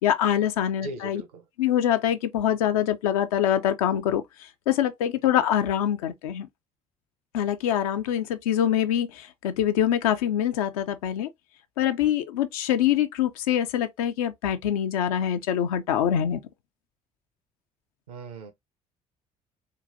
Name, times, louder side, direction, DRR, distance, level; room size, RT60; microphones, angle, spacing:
voice 1, 0.0-1.2 1.6-4.2 4.7-6.5 7.3-11.3 11.8-16.4, left 10 dB, 70° left, 0.4 m, -24 dB
voice 2, 0.8-1.4 18.1-18.5, right 2 dB, 75° right, 0.7 m, -38 dB
3.8 x 2.2 x 2.6 m
figure-of-eight pair, 50°, 19 cm